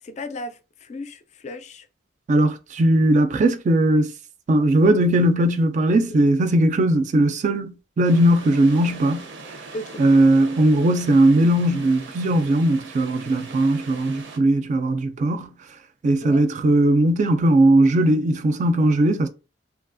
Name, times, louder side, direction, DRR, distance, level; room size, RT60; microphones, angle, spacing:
voice 1, 0.0-1.9 6.1-6.2 9.7-10.0 16.2-16.4, left 1 dB, 40° left, 0.4 m, -35 dB
voice 2, 2.3-4.1 4.5-9.3 10.0-15.5 16.0-19.3, right 1 dB, 40° right, 0.3 m, -18 dB
sound 1, 8.0-14.4, right 3 dB, 90° right, 0.6 m, -41 dB
2.8 x 2.3 x 2.5 m
head